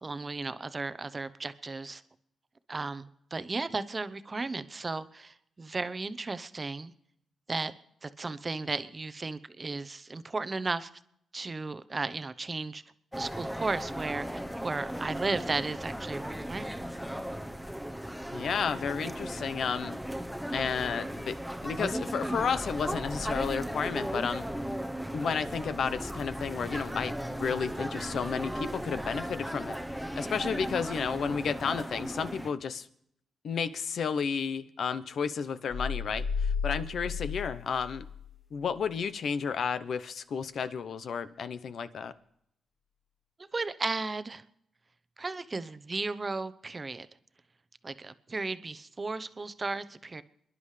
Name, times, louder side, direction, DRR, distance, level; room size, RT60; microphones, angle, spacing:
voice 1, 0.0-2.0 2.7-6.9 7.5-7.7 8.0-10.9 11.3-12.8 13.1-14.3 14.6-16.8 43.5-44.4 45.2-47.1 47.8-50.2, right 3 dB, 30° right, 14 dB, 0.8 m, -35 dB
sound 1, 13.1-32.5, equal, ahead, 0.9 m, -36 dB
voice 2, 18.3-20.0 20.5-21.3 21.6-24.4 25.1-32.9 33.4-38.0 38.5-42.1, left 6 dB, 70° left, 13 dB, 0.8 m, -32 dB
sound 2, 35.7-38.4, left 5 dB, 40° left, 1.3 m, -33 dB
29.5 x 11.0 x 3.3 m, 0.74 s
cardioid pair, 75°, 0 cm